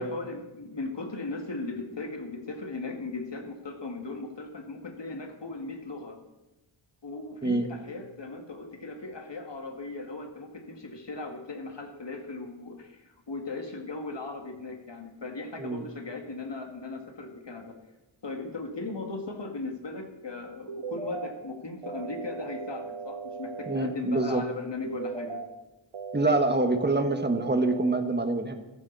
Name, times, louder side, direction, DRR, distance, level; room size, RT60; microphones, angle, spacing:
voice 1, 0.0-6.2 7.0-17.8 18.2-25.4, left 3 dB, 55° left, 3 dB, 2.2 m, -38 dB
sound 1, 20.7-21.3 21.8-23.8 24.8-25.4 25.9-27.9, right 5 dB, 85° right, 1.5 m, -38 dB
voice 2, 23.7-24.4 26.1-28.6, right 2 dB, 20° right, 6 dB, 1.4 m, -25 dB
14.5 x 14.0 x 4.1 m, 1.0 s
wide cardioid pair, 85°, 49 cm